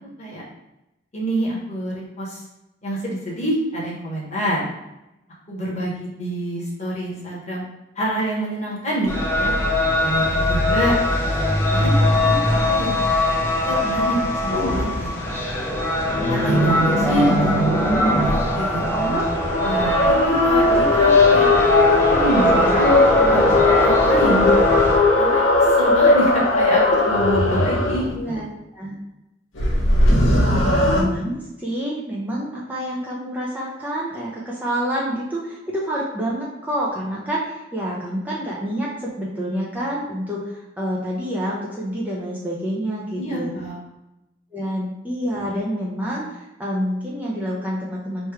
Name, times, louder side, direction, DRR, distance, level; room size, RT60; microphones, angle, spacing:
voice 1, 1.1-2.4 2.8-4.6 5.5-7.6 7.9-9.5 10.0-11.0 11.7-13.0 13.6-15.1 16.3-17.5 18.2-19.2 19.6-21.5 22.1-23.0 23.3-23.5 23.8-24.8 25.2-25.4 25.8-28.4 43.2-43.8, right 1 dB, 35° left, -5 dB, 1.2 m, -26 dB
sound 1, 9.1-25.0, left 1 dB, 15° left, 1.1 m, -21 dB
sound 2, 14.5-14.9 16.0-18.4 19.2-28.2 29.6-31.0, left 2 dB, 90° left, 1.0 m, -18 dB
voice 2, 18.8-19.3 22.5-22.7 23.1-23.4 28.2-28.4 28.7-28.9 30.4-43.5 44.5-48.3, equal, 10° right, -6 dB, 0.6 m, -28 dB
3.2 x 3.0 x 4.6 m, 0.94 s
head